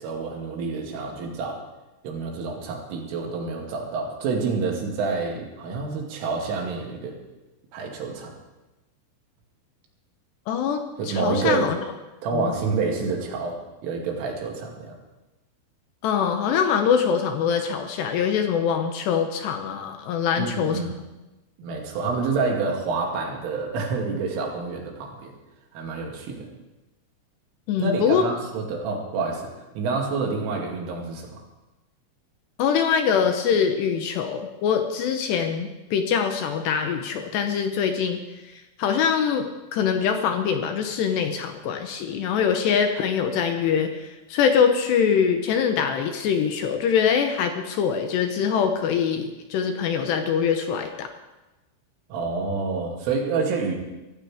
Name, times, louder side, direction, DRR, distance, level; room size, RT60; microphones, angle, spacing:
voice 1, 0.0-1.6 2.0-7.2 7.7-8.3 11.0-11.7 12.2-15.0 20.4-20.9 21.6-25.3 25.7-26.5 27.8-31.4 52.1-53.8, right 4 dB, 80° right, 0 dB, 4.9 m, -28 dB
voice 2, 10.5-11.8 12.3-12.5 16.0-20.8 27.7-28.2 32.6-38.2 38.8-39.5 39.7-51.1, left 7 dB, 75° left, 5 dB, 2.7 m, -23 dB
24.5 x 14.5 x 3.6 m, 1.1 s
omnidirectional pair, 5.6 m